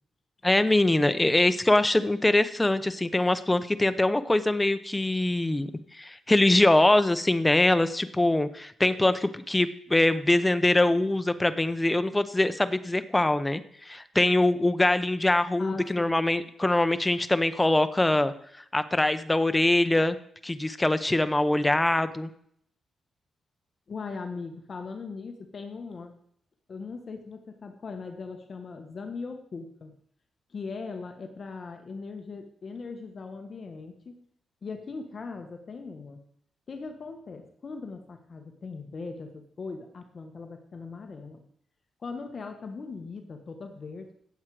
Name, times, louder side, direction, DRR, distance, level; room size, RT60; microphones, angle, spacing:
voice 1, 0.4-5.7 6.0-18.3 18.7-20.2 20.4-22.3, left 2 dB, 10° left, 11 dB, 0.8 m, -23 dB
voice 2, 15.6-16.1 21.3-21.5 23.9-26.2 26.7-29.9 30.5-34.2 34.6-36.2 36.7-41.4 42.0-44.1, left 4 dB, 40° left, 5 dB, 1.4 m, -39 dB
16.5 x 7.4 x 4.9 m, 0.66 s
cardioid pair, 120°, 0 cm